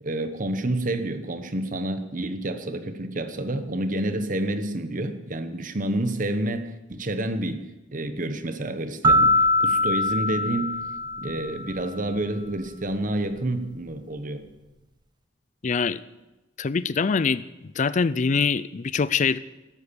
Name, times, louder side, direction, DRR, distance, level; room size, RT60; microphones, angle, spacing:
voice 1, 0.0-7.6 7.9-9.3 9.6-10.8 11.2-14.5, right 1 dB, 45° right, 10 dB, 1.2 m, -29 dB
sound 1, 9.0-11.8, left 1 dB, 25° right, 0.7 m, -22 dB
voice 2, 15.6-16.0 16.6-17.4 17.8-19.4, left 5 dB, 40° left, 17 dB, 0.4 m, -23 dB
13.0 x 12.5 x 7.0 m, 1.0 s
head